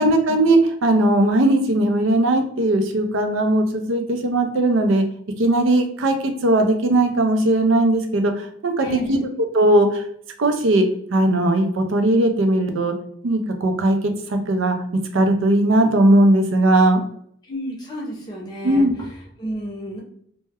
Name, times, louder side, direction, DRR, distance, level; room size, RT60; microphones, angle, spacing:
voice 1, 0.0-5.0 5.4-9.3 9.5-10.0 10.4-10.9 11.1-12.9 13.2-14.0 14.3-17.0 18.6-18.9, right 1 dB, 85° right, 5 dB, 0.5 m, -18 dB
voice 2, 8.8-9.3 17.5-20.0, equal, 20° left, -4 dB, 0.6 m, -32 dB
2.1 x 2.1 x 3.4 m, 0.64 s
head